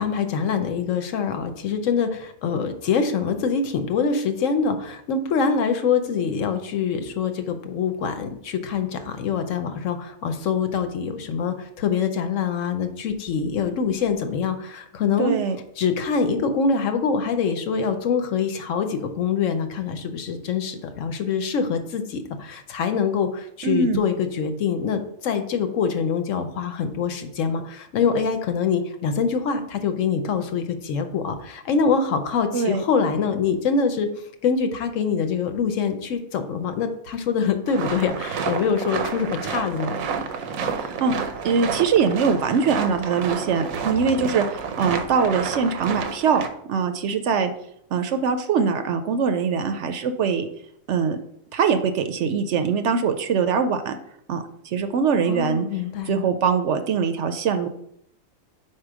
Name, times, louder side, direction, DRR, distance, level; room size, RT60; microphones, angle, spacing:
voice 1, 0.0-15.3 15.8-34.1 34.4-40.0 55.3-56.3, left 6 dB, 70° left, 7 dB, 1.0 m, -24 dB
voice 2, 15.2-15.6 23.6-24.0 32.5-32.8 40.8-41.1 41.4-44.4 44.8-46.4 46.7-47.5 47.9-50.5 50.9-51.2 51.5-53.9 54.3-55.6 56.1-57.7, right 6 dB, 65° right, 8 dB, 0.8 m, -22 dB
sound 1, 37.7-46.5, right 6 dB, 85° right, 1.1 m, -30 dB
4.6 x 4.5 x 4.8 m, 0.71 s
omnidirectional pair, 1.4 m